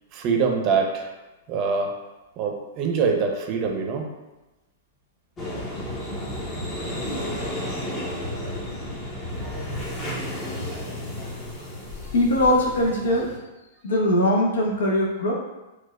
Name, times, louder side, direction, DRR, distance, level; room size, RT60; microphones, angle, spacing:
voice 1, 0.1-1.1 1.5-1.9 2.4-4.1 9.4-9.5, right 5 dB, 40° right, 2 dB, 0.5 m, -24 dB
sound 1, 5.4-13.4, left 1 dB, 25° left, 0.8 m, -32 dB
voice 2, 12.1-13.4 13.8-15.3, left 1 dB, 80° left, -1 dB, 0.7 m, -21 dB
4.1 x 2.3 x 2.3 m, 1.1 s
hypercardioid pair, 115°, 0 cm